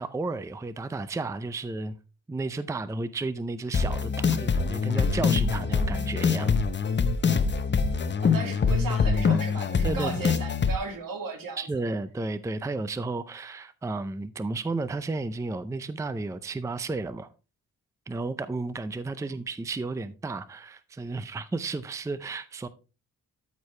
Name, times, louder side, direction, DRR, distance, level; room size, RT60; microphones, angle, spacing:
voice 1, 0.0-1.9 2.3-6.6 9.8-10.4 11.6-17.3 18.1-22.7, right 3 dB, 10° right, 0.4 m, -33 dB
sound 1, 3.7-10.7, left 5 dB, 35° left, 0.8 m, -24 dB
voice 2, 8.2-11.8 19.2-19.3, right 3 dB, 80° right, 2.2 m, -36 dB
13.0 x 4.7 x 3.2 m
wide cardioid pair, 130°, 34 cm